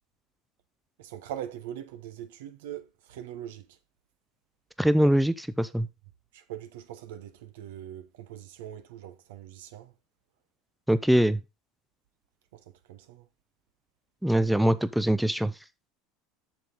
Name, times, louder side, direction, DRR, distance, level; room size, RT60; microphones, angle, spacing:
voice 1, 1.0-3.8 6.3-9.9 12.5-13.3, right 11 dB, 70° right, 0.9 m, -42 dB
voice 2, 4.8-5.9 10.9-11.4 14.2-15.5, right 1 dB, ahead, 0.5 m, -23 dB
7.4 x 6.8 x 3.8 m
hypercardioid pair, 75°, 0 cm